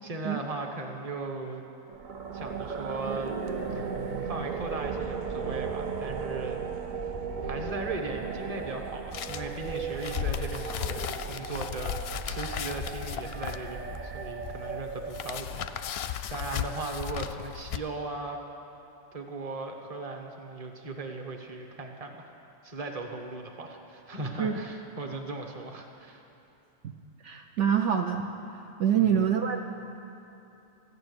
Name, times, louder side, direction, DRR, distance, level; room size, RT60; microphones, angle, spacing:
voice 1, 0.0-1.6 2.3-3.3 3.7-3.9 4.2-6.6 7.0-12.0 12.2-18.4 19.1-22.3 22.6-26.2 29.0-29.3, right 3 dB, 30° right, 3 dB, 1.1 m, -38 dB
sound 1, 1.9-16.0, right 5 dB, 50° right, 0.6 m, -36 dB
sound 2, 9.1-17.8, left 9 dB, 65° left, 0.7 m, -36 dB
voice 2, 27.2-28.3 28.8-29.6, right 8 dB, 70° right, 4 dB, 0.9 m, -25 dB
14.0 x 6.9 x 9.5 m, 2.9 s
omnidirectional pair, 1.3 m